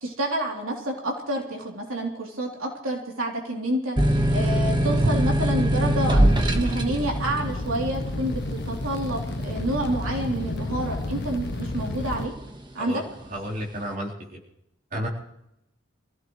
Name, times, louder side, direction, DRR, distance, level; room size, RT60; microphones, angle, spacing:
voice 1, 0.0-12.3 12.7-13.0, right 1 dB, 85° right, -1 dB, 3.3 m, -29 dB
sound 1, 4.0-11.2 11.7-12.4, right 1 dB, 20° right, 1.4 m, -23 dB
sound 2, 6.2-12.2, left 2 dB, 55° left, 0.9 m, -32 dB
voice 2, 13.3-14.4 14.9-15.1, equal, 45° right, -3 dB, 3.9 m, -32 dB
26.0 x 16.0 x 3.2 m, 0.80 s
head